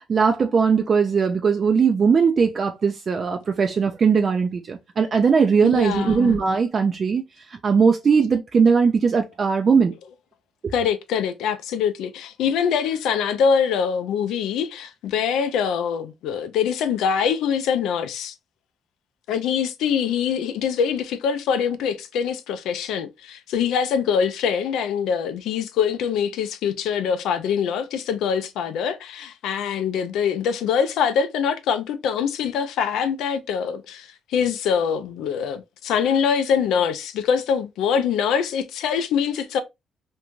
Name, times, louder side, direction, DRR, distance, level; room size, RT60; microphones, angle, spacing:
voice 1, 0.0-7.2 7.6-9.9, right 5 dB, 45° right, 0.3 m, -19 dB
voice 2, 5.6-6.4 10.7-18.3 19.3-39.6, left 7 dB, 85° left, 0.4 m, -24 dB
2.5 x 2.2 x 2.9 m
cardioid pair, 90°, 0 cm